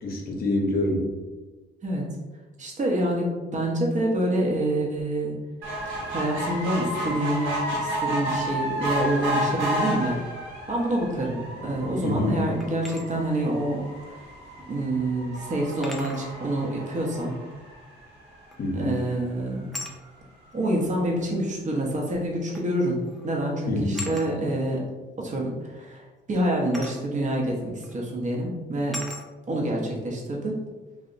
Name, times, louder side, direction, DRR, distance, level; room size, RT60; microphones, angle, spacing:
voice 1, 0.0-1.0 12.0-12.5 18.6-19.0 23.7-24.1, left 1 dB, 50° left, 0 dB, 0.6 m, -26 dB
voice 2, 2.6-5.4 6.1-7.5 7.8-10.2 10.7-14.2 14.7-17.4 18.7-19.7 20.5-24.8 25.2-26.0 26.3-29.0 29.5-30.6, right 1 dB, 40° right, -1 dB, 0.7 m, -27 dB
sound 1, 5.6-18.2 18.8-18.9 19.2-19.3 19.5-19.6, equal, 80° right, 0.8 m, -32 dB
sound 2, 12.6-13.1 14.6-14.7 15.8-16.3 18.5-18.8 19.7-20.0 21.2-21.3 22.5-22.8 23.0-23.3 23.9-24.3 26.7-27.0 27.8-27.9 28.9-29.3, left 1 dB, ahead, 0.4 m, -37 dB
2.7 x 2.1 x 2.5 m, 1.2 s
cardioid pair, 90°, 20 cm